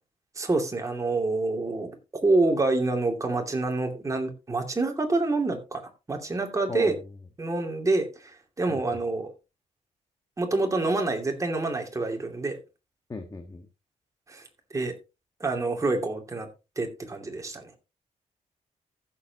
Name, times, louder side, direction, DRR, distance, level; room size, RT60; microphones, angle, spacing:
voice 1, 0.4-5.8 6.1-6.9 7.4-9.3 10.4-12.6 14.3-14.4 14.7-14.9 15.4-16.5 16.8-17.7, right 2 dB, 25° right, 3 dB, 2.6 m, -27 dB
voice 2, 6.7-7.1 8.7-9.0 13.1-13.7, left 3 dB, 25° left, 4 dB, 1.5 m, -37 dB
15.0 x 7.2 x 2.9 m, 0.28 s
cardioid pair, 115°, 13 cm